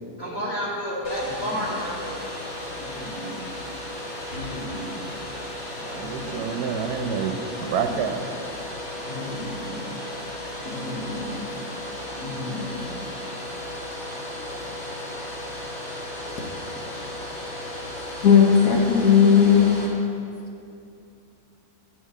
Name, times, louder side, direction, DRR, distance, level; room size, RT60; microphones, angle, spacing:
voice 1, 0.0-2.2 2.8-3.4 4.3-4.9 5.9-6.4 9.0-10.1 10.6-11.3 12.2-12.9, left 1 dB, 15° left, -6 dB, 2.4 m, -32 dB
Domestic sounds home sounds, 1.0-19.9, left 1 dB, 45° left, 2.0 m, -35 dB
voice 2, 5.8-7.3 7.6-8.3, right 6 dB, 75° right, 6 dB, 1.2 m, -28 dB
voice 3, 18.2-19.6, left 7 dB, 60° left, 0 dB, 1.4 m, -15 dB
11.0 x 4.6 x 8.3 m, 2.6 s
omnidirectional pair, 1.7 m